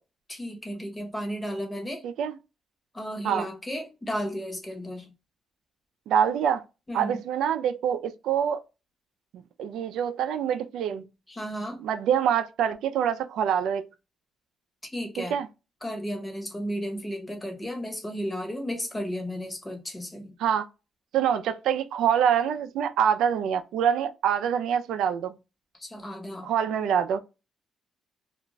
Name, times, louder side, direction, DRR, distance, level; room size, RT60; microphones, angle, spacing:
voice 1, 0.3-2.0 2.9-5.1 6.9-7.2 11.3-11.8 14.9-15.4 15.8-20.3 25.8-26.5, equal, 15° left, 1.0 m, -34 dB
voice 2, 2.0-2.3 3.2-3.5 6.1-6.6 6.9-8.6 9.3-11.0 11.8-13.9 15.3-15.5 20.4-20.6 21.1-25.4 26.4-27.2, right 8 dB, 80° right, 0.3 m, -25 dB
2.4 x 2.2 x 3.0 m
cardioid pair, 90°, 0 cm